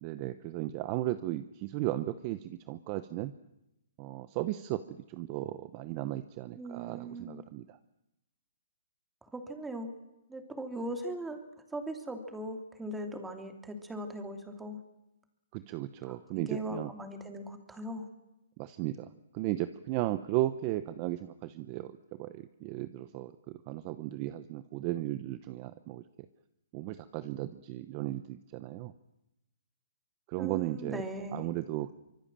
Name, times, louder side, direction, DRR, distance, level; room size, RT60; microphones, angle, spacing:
voice 1, 0.0-3.3 4.0-7.8 15.5-16.9 18.6-26.0 26.7-28.9 30.3-31.0 31.3-31.9, right 15 dB, 30° right, 13 dB, 0.9 m, -35 dB
voice 2, 6.6-7.5 9.2-9.9 10.3-11.4 11.7-14.8 16.1-16.2 16.5-18.1 30.4-31.4, right 1 dB, 5° right, 5 dB, 2.8 m, -39 dB
25.0 x 23.0 x 7.6 m, 0.91 s
hypercardioid pair, 160°, 0 cm